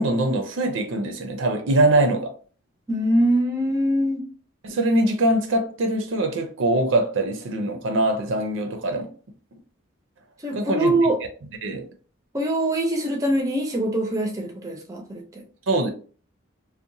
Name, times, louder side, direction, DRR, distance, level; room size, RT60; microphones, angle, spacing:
voice 1, 0.0-2.3 4.6-9.1 10.5-10.9 11.6-11.9 15.7-15.9, right 1 dB, 70° right, 0.5 m, -22 dB
voice 2, 2.9-4.3 10.4-11.2 12.3-15.4, right 1 dB, 15° right, 0.4 m, -23 dB
2.8 x 2.1 x 2.6 m
head